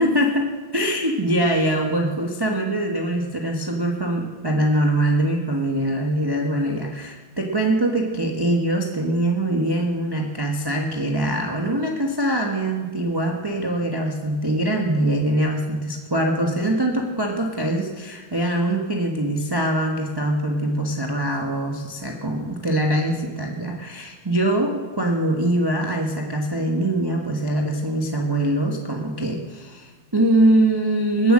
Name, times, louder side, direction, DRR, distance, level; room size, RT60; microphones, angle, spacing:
voice 1, 0.0-31.3, right 1 dB, 15° right, 1 dB, 1.0 m, -23 dB
19.5 x 8.0 x 7.4 m, 1.3 s
omnidirectional pair, 2.2 m